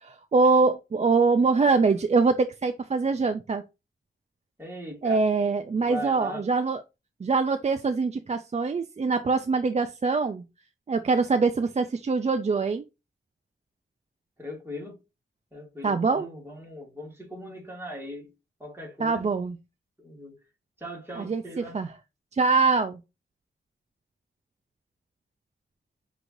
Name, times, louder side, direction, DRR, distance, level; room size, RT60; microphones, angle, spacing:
voice 1, 0.0-3.6 5.0-6.8 7.2-10.4 10.9-12.8 15.8-16.3 19.0-19.6 21.2-21.9 22.3-23.0, right 4 dB, 35° right, 0.4 m, -24 dB
voice 2, 4.6-5.2 5.7-6.4 14.4-15.0 15.5-18.3 18.6-19.3 20.0-20.4 20.8-21.8, equal, 10° right, 2.3 m, -39 dB
6.3 x 3.1 x 2.6 m
wide cardioid pair, 95°, 20 cm